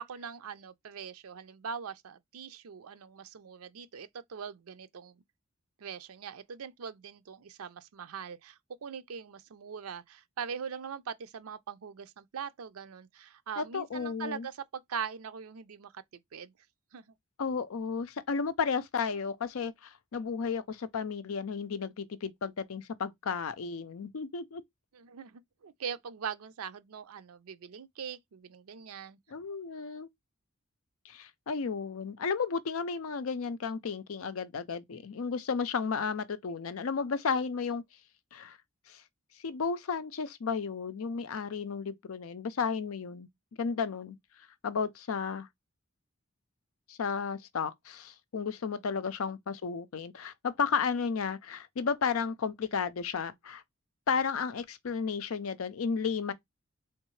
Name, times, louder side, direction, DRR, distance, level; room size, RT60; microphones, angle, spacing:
voice 1, 0.0-5.2 5.8-16.0 16.3-16.5 16.9-17.1 24.9-29.2 44.7-44.8, right 7 dB, 90° right, 0.5 m, -42 dB
voice 2, 13.6-14.5 17.4-24.6 29.3-30.1 31.0-37.8 38.3-38.6 38.9-39.0 39.4-43.3 43.6-44.2 44.6-45.5 46.9-53.6 54.1-56.3, left 5 dB, 75° left, 0.5 m, -33 dB
3.6 x 3.2 x 3.1 m
head